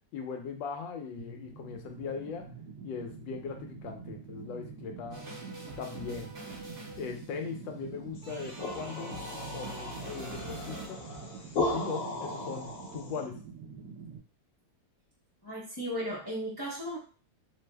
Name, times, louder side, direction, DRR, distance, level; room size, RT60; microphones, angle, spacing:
voice 1, 0.1-2.4 2.8-5.3 5.8-6.3 7.0-9.2 9.5-11.0 11.7-12.7 12.9-13.3, left 5 dB, 85° left, 4 dB, 1.3 m, -39 dB
sound 1, 1.2-14.2, right 5 dB, 70° right, 1.1 m, -46 dB
sound 2, 5.1-7.5 8.2-10.9, right 2 dB, 35° right, 1.0 m, -45 dB
Mascara de gas, 8.2-13.2, left 3 dB, 60° left, 0.9 m, -36 dB
voice 2, 15.4-17.0, equal, 35° left, -7 dB, 0.3 m, -35 dB
3.2 x 2.0 x 3.3 m, 0.39 s
omnidirectional pair, 2.0 m